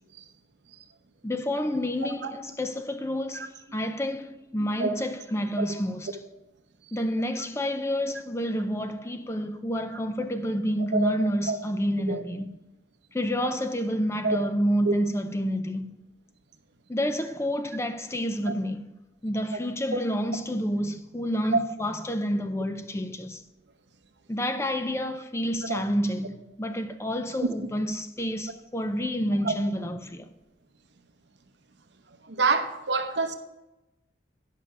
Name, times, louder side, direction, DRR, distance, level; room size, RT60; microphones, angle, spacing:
voice 1, 1.2-6.2 6.9-12.5 13.1-15.9 16.9-18.9 19.2-23.4 24.3-30.3, equal, 15° left, 0.5 m, -29 dB
voice 2, 10.9-11.6 12.1-12.2 14.2-14.4 14.9-15.0 25.7-25.8 29.4-29.5 32.3-33.3, right 3 dB, 70° right, 0.9 m, -26 dB
11.0 x 5.7 x 4.8 m
head